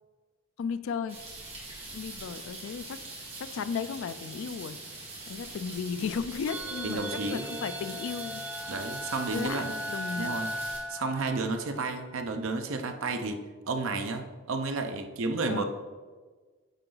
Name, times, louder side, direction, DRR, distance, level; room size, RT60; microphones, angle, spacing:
voice 1, 0.6-1.2 1.9-4.8 5.3-7.0 7.3-8.4 9.3-10.4 15.5-15.6, left 6 dB, 60° left, 13 dB, 0.3 m, -35 dB
sound 1, 1.1-10.8, right 2 dB, 25° right, 1.8 m, -43 dB
sound 2, 6.5-11.9, right 1 dB, 10° right, 0.6 m, -37 dB
voice 2, 6.8-7.5 8.7-9.7 10.2-10.5 10.9-13.4 13.7-15.6, right 3 dB, 60° right, 6 dB, 0.6 m, -31 dB
9.0 x 3.9 x 3.9 m, 1.4 s
head